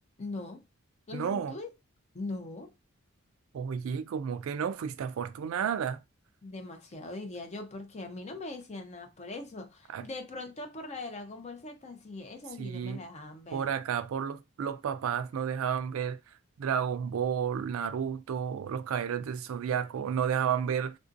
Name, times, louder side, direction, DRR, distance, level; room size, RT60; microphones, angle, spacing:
voice 1, 0.2-0.6 1.1-1.7 2.1-2.7 6.4-13.7, left 2 dB, 30° left, 0.6 m, -41 dB
voice 2, 1.1-1.5 3.5-6.0 9.9-10.1 12.6-13.0 13.5-16.2 16.6-21.0, right 7 dB, 70° right, 0.3 m, -31 dB
3.5 x 2.6 x 2.5 m
head